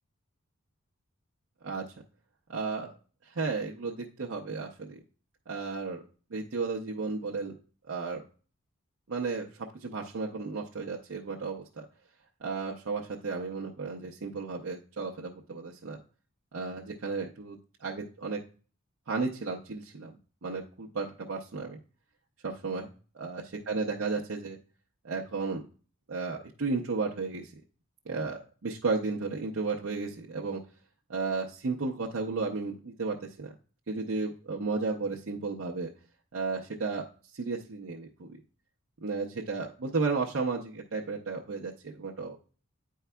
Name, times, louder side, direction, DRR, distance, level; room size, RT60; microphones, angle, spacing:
voice 1, 2.5-2.9 3.2-5.0 5.5-6.0 6.3-7.5 7.9-8.3 9.1-11.8 12.4-16.0 16.5-18.4 19.1-20.2 20.4-21.8 22.4-22.9 23.2-24.6 25.0-25.7 26.1-27.5 28.1-30.6 31.1-33.5 33.9-35.9 36.3-37.1 37.3-38.4 39.0-42.4, right 4 dB, 65° right, -3 dB, 0.7 m, -33 dB
9.1 x 4.6 x 2.2 m, 0.38 s
head